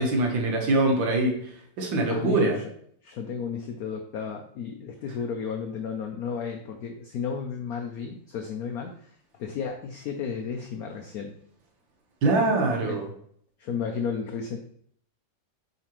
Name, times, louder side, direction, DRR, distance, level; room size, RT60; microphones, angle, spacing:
voice 1, 0.0-2.6 12.2-13.1, right 2 dB, 85° right, 2 dB, 2.0 m, -24 dB
voice 2, 2.1-2.5 3.0-11.3 12.9-13.0 13.6-14.6, left 6 dB, 65° left, 4 dB, 0.9 m, -33 dB
7.7 x 4.2 x 3.0 m, 0.63 s
omnidirectional pair, 2.0 m